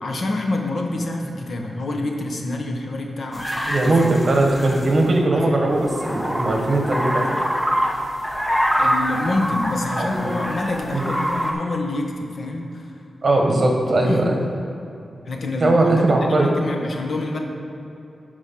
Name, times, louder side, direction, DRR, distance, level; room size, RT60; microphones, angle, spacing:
voice 1, 0.0-3.5 3.8-4.1 5.3-5.7 8.8-12.9 14.0-14.4 15.2-15.9 16.2-17.4, left 2 dB, 60° left, 2 dB, 1.1 m, -27 dB
sound 1, 3.3-5.0 5.7-11.5, equal, 10° left, 0.9 m, -25 dB
voice 2, 3.7-7.4 10.0-10.3 10.9-11.1 13.2-14.4 15.6-16.5, right 2 dB, 45° right, 1 dB, 1.4 m, -19 dB
9.4 x 5.3 x 5.9 m, 2.8 s
wide cardioid pair, 105°, 0 cm